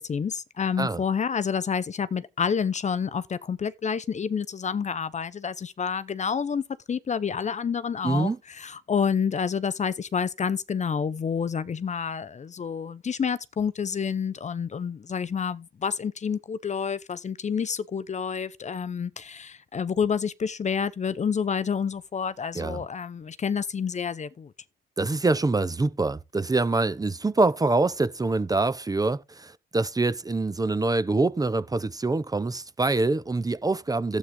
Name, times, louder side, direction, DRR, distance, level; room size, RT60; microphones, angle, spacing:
voice 1, 0.0-24.5, left 6 dB, 35° left, 0.8 m, -29 dB
voice 2, 8.0-8.4 22.6-22.8 25.0-34.2, right 3 dB, 20° right, 0.8 m, -25 dB
12.5 x 8.4 x 3.9 m
cardioid pair, 90°, 20 cm